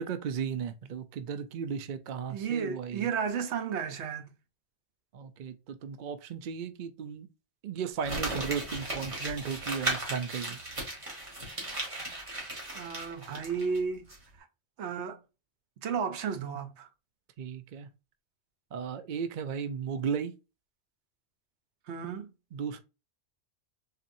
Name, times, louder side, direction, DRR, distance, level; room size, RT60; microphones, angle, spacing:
voice 1, 0.0-3.1 5.1-7.3 7.6-10.6 17.4-17.9 18.7-20.3 22.5-22.8, right 7 dB, 60° right, 0.5 m, -35 dB
voice 2, 2.3-4.3 12.7-14.1 14.8-15.2 15.8-16.9 21.9-22.3, right 6 dB, 75° right, 1.0 m, -33 dB
Crumpling crinkling, 8.0-13.8 14.1-14.2, right 1 dB, 30° right, 1.3 m, -36 dB
4.2 x 2.8 x 2.5 m
omnidirectional pair, 1.2 m